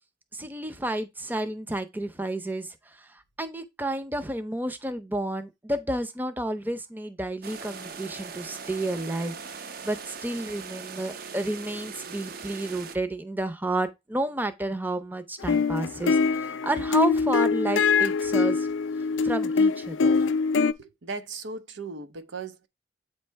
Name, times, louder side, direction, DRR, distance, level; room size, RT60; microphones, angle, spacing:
voice 1, 0.3-3.1 3.4-18.7 19.2-20.1, right 1 dB, 10° right, 0.6 m, -31 dB
sound 1, 7.4-13.0, right 5 dB, 50° right, 0.6 m, -40 dB
sound 2, 15.4-20.7, left 4 dB, 85° left, 0.4 m, -23 dB
voice 2, 20.8-22.7, right 4 dB, 85° right, 0.9 m, -37 dB
8.3 x 3.2 x 4.5 m
head